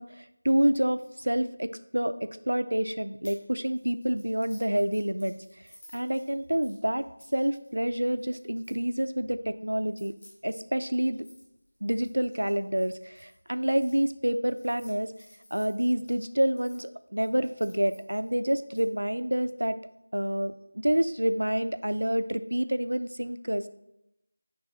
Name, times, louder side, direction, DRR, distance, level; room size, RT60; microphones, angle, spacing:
voice 1, 0.0-5.4 5.9-7.1 7.3-10.1 10.4-11.3 11.8-15.1 15.5-19.8 20.1-20.5 20.8-23.7, right 1 dB, 70° right, 12 dB, 0.5 m, -28 dB
sound 1, 3.2-3.4 3.7-9.0 9.8-13.9 14.5-16.8 17.2-18.8, left 1 dB, 40° left, 3.0 m, -56 dB
10.5 x 4.0 x 3.9 m, 0.86 s
figure-of-eight pair, 170°, 0 cm